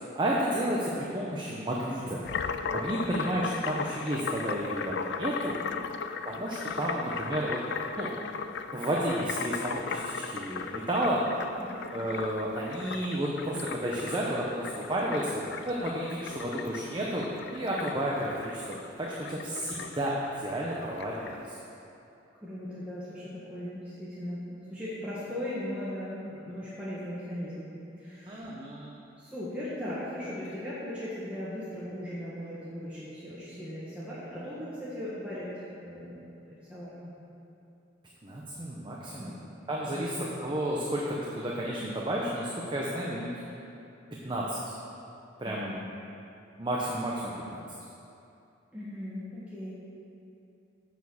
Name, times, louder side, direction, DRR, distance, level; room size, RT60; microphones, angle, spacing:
voice 1, 0.1-2.2 2.7-5.6 6.2-7.6 8.0-8.1 8.7-11.2 11.9-17.3 17.5-21.6 28.3-29.0 38.2-39.4 39.7-43.3 44.2-44.6 45.4-45.8 46.6-47.6, right 1 dB, 25° right, -4 dB, 0.8 m, -32 dB
sound 1, 2.2-21.4, left 6 dB, 60° left, 0.4 m, -37 dB
voice 2, 2.8-3.2 5.6-5.9 11.6-11.8 22.4-27.7 28.0-28.5 29.2-36.2 36.5-37.1 39.2-39.3 39.9-40.2 45.4-45.8 48.7-49.7, left 1 dB, 5° right, -11 dB, 1.4 m, -38 dB
7.2 x 6.2 x 7.1 m, 2.7 s
head